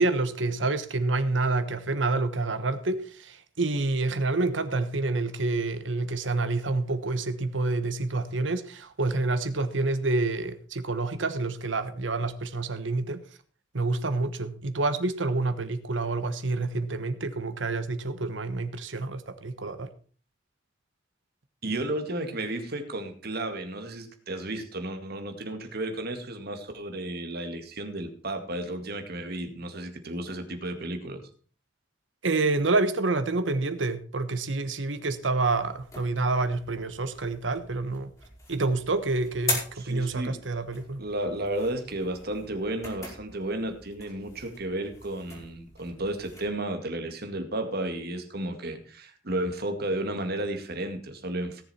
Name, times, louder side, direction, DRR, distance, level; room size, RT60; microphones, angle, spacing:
voice 1, 0.0-13.2 13.7-19.9 32.2-38.1 38.5-41.0, right 3 dB, 90° right, 1.3 m, -28 dB
voice 2, 21.6-31.2 39.8-40.4 41.0-51.6, right 1 dB, 60° right, 2.1 m, -33 dB
sound 1, 35.4-46.5, left 2 dB, 20° left, 4.4 m, -41 dB
17.5 x 7.2 x 4.4 m
head